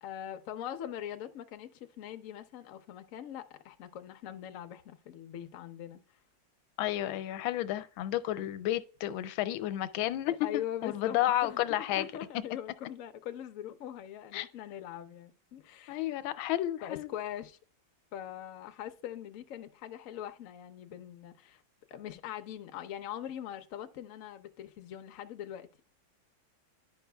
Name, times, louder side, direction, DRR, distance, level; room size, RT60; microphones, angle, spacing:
voice 1, 0.0-6.0 10.3-16.1 16.8-17.6 18.1-21.6 21.9-25.7, left 10 dB, 70° left, 0.7 m, -42 dB
voice 2, 6.8-10.3 10.8-12.0 14.3-14.5 15.9-17.1, left 13 dB, 90° left, 1.4 m, -31 dB
11.0 x 5.4 x 2.2 m
omnidirectional pair, 2.1 m